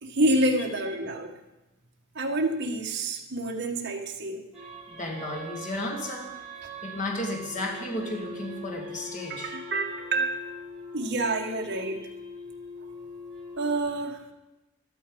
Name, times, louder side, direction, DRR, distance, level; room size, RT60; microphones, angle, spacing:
voice 1, 0.0-1.3 2.2-4.4 9.3-10.3 10.9-12.0 13.6-14.2, right 1 dB, 55° right, 1 dB, 1.7 m, -28 dB
sound 1, 4.5-13.8, equal, 5° right, 4.6 m, -42 dB
voice 2, 4.9-6.4 6.8-9.5, left 1 dB, 35° left, 0 dB, 1.9 m, -33 dB
13.0 x 13.0 x 5.4 m, 0.98 s
head